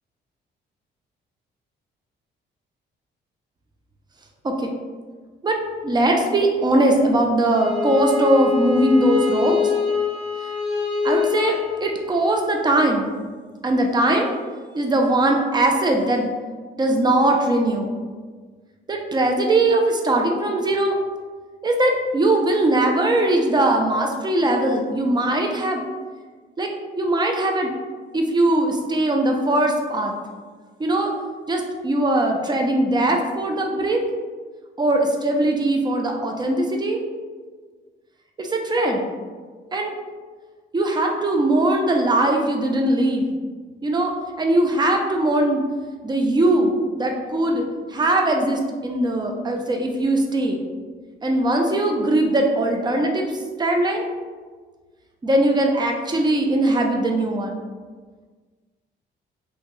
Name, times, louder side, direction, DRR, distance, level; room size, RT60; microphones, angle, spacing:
voice 1, 5.4-9.6 11.0-13.1 13.6-14.3 14.7-16.3 16.8-18.0 18.9-21.0 21.6-25.8 26.6-26.7 27.0-27.7 28.1-30.1 30.8-31.1 31.5-34.0 34.8-37.0 38.4-39.0 39.7-39.9 40.7-43.3 43.8-45.6 46.0-47.6 47.9-50.6 51.2-53.2 53.6-54.1 55.2-57.6, right 1 dB, 20° right, 2 dB, 0.4 m, -20 dB
Bowed string instrument, 7.4-12.4, left 6 dB, ahead, 1.0 m, -25 dB
2.8 x 2.1 x 3.0 m, 1.5 s
cardioid pair, 90°, 20 cm